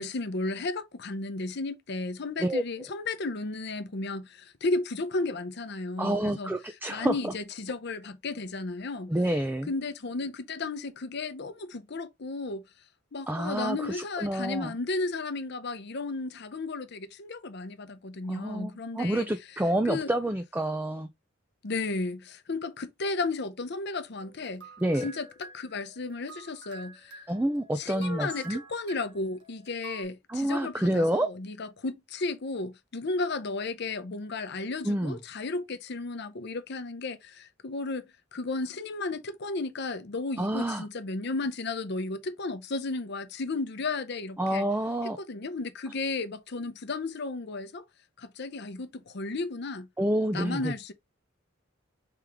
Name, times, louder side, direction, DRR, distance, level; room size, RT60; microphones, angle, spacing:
voice 1, 0.0-6.5 6.9-9.1 9.7-12.6 13.1-19.3 19.9-20.1 21.6-24.7 25.0-27.3 27.8-44.7 45.2-47.8 48.2-49.9 50.3-50.9, left 3 dB, 55° left, 0.7 m, -34 dB
voice 2, 6.0-7.3 9.1-9.7 13.3-14.7 18.3-21.1 24.8-25.1 27.3-28.6 30.3-31.3 34.8-35.2 40.4-40.9 44.4-45.2 50.0-50.7, right 1 dB, 10° right, 0.4 m, -28 dB
sound 1, 24.2-30.0, right 5 dB, 60° right, 1.8 m, -49 dB
4.8 x 3.6 x 2.9 m
head